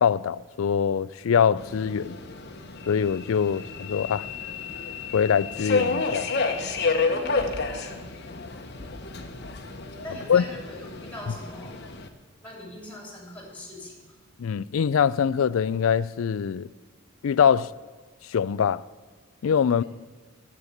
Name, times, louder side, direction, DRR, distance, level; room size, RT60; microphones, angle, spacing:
voice 1, 0.0-2.2 2.9-4.3 5.1-6.3 10.3-10.4 14.4-16.7 17.2-17.7 18.3-18.8 19.4-19.8, left 7 dB, 65° left, 0.3 m, -23 dB
Subway metro underground, 1.6-12.1, left 4 dB, 50° left, 1.0 m, -30 dB
voice 2, 7.0-8.1 10.0-11.7 12.4-14.2, left 1 dB, 5° left, 3.3 m, -42 dB
9.8 x 8.1 x 9.0 m
head